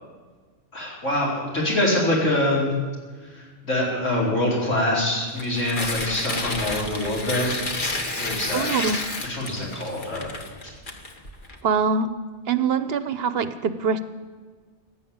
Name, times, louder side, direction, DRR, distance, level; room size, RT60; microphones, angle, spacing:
voice 1, 0.7-2.7 3.3-7.5 8.2-8.7 9.2-10.3, left 1 dB, 85° left, -5 dB, 5.0 m, -24 dB
Tearing, 5.3-11.6, left 2 dB, 45° left, 1.6 m, -30 dB
voice 2, 8.5-9.0 11.6-12.1 12.5-14.0, right 5 dB, 60° right, 12 dB, 0.9 m, -23 dB
16.5 x 9.5 x 8.7 m, 1.5 s
omnidirectional pair, 1.3 m